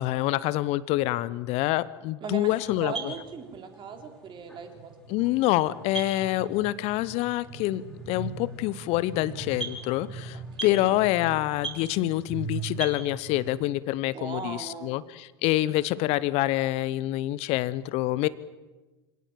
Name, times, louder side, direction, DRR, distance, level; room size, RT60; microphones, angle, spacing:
voice 1, 0.0-3.1 5.1-18.3, left 16 dB, 50° left, 18 dB, 0.8 m, -26 dB
voice 2, 2.2-2.5 2.8-4.9 10.5-11.0 14.0-15.0, right 5 dB, 35° right, 5 dB, 3.6 m, -38 dB
sound 1, 2.6-13.6, right 4 dB, ahead, 6.2 m, -39 dB
25.5 x 18.0 x 7.6 m, 1.2 s
figure-of-eight pair, 80°, 14 cm